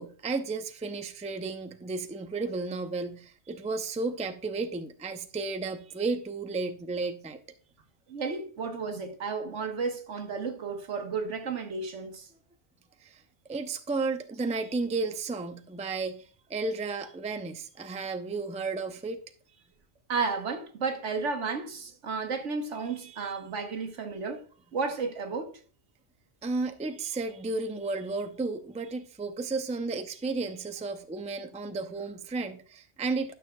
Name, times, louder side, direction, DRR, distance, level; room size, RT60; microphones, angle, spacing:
voice 1, 0.0-7.4 13.0-13.2 13.5-19.2 23.0-23.3 26.4-33.3, right 3 dB, 10° right, 0.3 m, -33 dB
voice 2, 8.1-12.3 20.1-24.4 24.7-25.5, right 4 dB, 90° right, 1.5 m, -33 dB
12.5 x 6.5 x 2.3 m
omnidirectional pair, 1.2 m